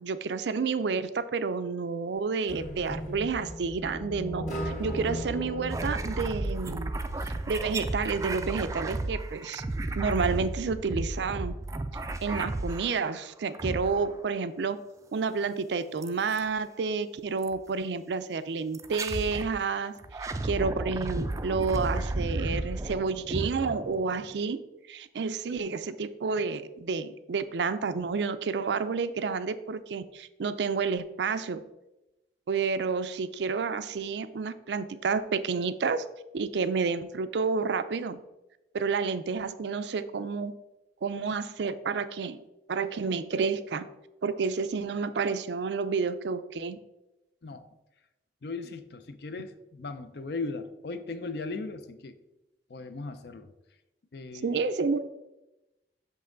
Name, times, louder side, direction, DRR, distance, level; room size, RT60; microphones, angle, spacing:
voice 1, 0.0-6.9 7.5-9.6 9.9-11.5 12.2-14.8 15.1-19.9 20.4-24.6 24.9-31.6 32.5-36.1 36.3-38.2 38.7-40.5 41.0-42.4 42.7-43.9 44.2-46.8 54.4-55.0, right 5 dB, 80° right, 12 dB, 0.4 m, -30 dB
sound 1, 2.5-7.4, equal, 45° left, 1.6 m, -37 dB
sound 2, 5.7-13.1 13.5-14.3 16.0-16.4 17.4-17.6 18.7-19.5 20.0-24.3, right 2 dB, 20° right, 0.3 m, -33 dB
voice 2, 48.4-52.1 52.7-53.5 54.1-54.6, left 3 dB, 65° left, 10 dB, 0.5 m, -37 dB
6.0 x 5.5 x 3.8 m, 0.97 s
head